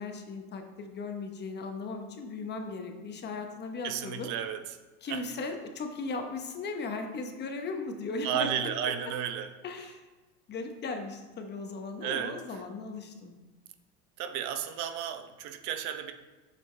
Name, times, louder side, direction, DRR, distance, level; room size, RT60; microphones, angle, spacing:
voice 1, 0.0-4.3 5.0-8.7 9.6-10.0 10.5-13.3, left 3 dB, 30° left, 5 dB, 0.9 m, -37 dB
voice 2, 3.8-4.6 5.1-5.2 8.2-9.5 12.0-12.4 14.2-16.1, right 9 dB, 55° right, 7 dB, 0.8 m, -33 dB
8.4 x 6.9 x 3.3 m, 1.2 s
supercardioid pair, 130°, 34 cm